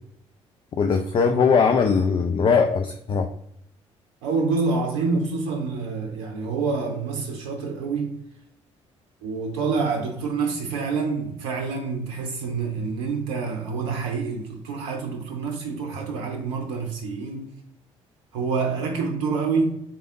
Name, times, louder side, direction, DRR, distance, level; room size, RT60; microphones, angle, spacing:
voice 1, 0.7-3.3, left 5 dB, 35° left, 0.4 m, -20 dB
voice 2, 4.2-8.1 9.2-17.5 18.3-19.7, right 4 dB, 70° right, 0.6 m, -27 dB
4.1 x 3.4 x 2.6 m
figure-of-eight pair, 45°, 15 cm